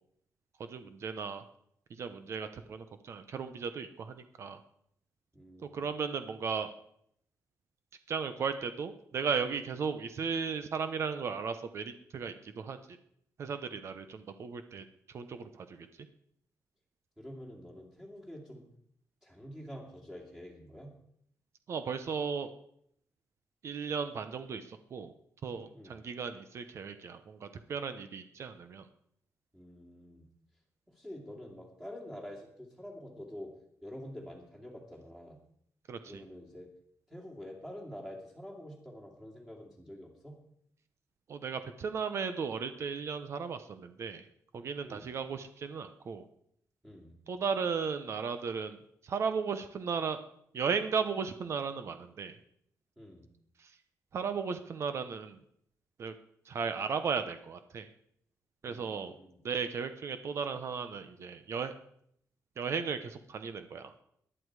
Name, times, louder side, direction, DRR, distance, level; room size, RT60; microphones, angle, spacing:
voice 1, 0.6-1.4 1.9-4.6 5.6-6.7 8.1-12.8 13.4-15.9 21.7-22.5 23.6-25.1 25.4-28.9 35.9-36.2 41.3-44.3 44.5-46.3 47.3-48.8 49.0-50.2 50.5-52.4 53.6-53.7 54.1-55.4 56.0-56.1 56.5-57.9 58.6-59.1 59.4-61.7 62.6-63.9, right 6 dB, 50° right, 9 dB, 0.9 m, -36 dB
voice 2, 5.3-6.0 13.9-14.3 17.2-18.7 19.2-20.9 25.7-26.0 29.5-30.3 30.9-33.5 33.8-35.4 36.1-36.7 37.1-40.3 44.8-45.1 46.8-47.1 53.0-53.2 58.6-59.4, equal, 10° right, -3 dB, 2.5 m, -47 dB
19.0 x 11.0 x 4.9 m, 0.70 s
wide cardioid pair, 170°, 6 cm